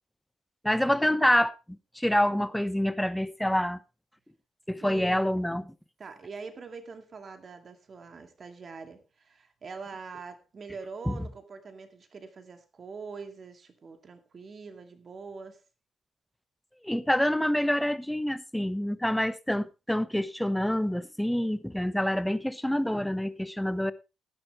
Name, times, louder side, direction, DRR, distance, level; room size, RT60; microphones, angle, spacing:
voice 1, 0.6-1.5 1.9-3.8 4.7-5.7 11.1-11.2 16.8-23.9, left 1 dB, 5° left, 1.0 m, -27 dB
voice 2, 4.8-5.3 6.0-15.6, right 4 dB, 40° right, 2.3 m, -44 dB
16.5 x 11.0 x 3.2 m
figure-of-eight pair, 40°, 0 cm